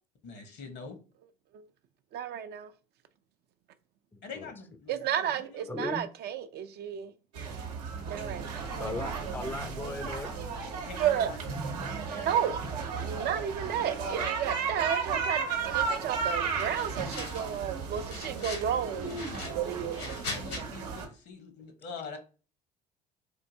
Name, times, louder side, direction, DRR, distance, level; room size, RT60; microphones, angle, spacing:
voice 1, 0.2-1.0 4.2-5.8 8.7-9.1 10.8-11.6 12.1-12.6 18.8-22.2, left 5 dB, 60° left, 1.0 m, -46 dB
voice 2, 2.1-2.7 4.9-7.1 8.1-8.6 11.0-11.3 12.2-12.6 13.0-19.1 19.5-20.0, right 9 dB, 55° right, 0.5 m, -32 dB
voice 3, 4.1-4.5 5.7-6.1 8.8-10.3, left 2 dB, 10° left, 0.4 m, -37 dB
sound 1, 7.3-21.1, right 5 dB, 85° right, 0.8 m, -34 dB
sound 2, 16.6-17.6 17.9-18.7 19.1-20.6, left 2 dB, 85° left, 1.9 m, -40 dB
4.4 x 2.6 x 2.7 m
hypercardioid pair, 65°, 20 cm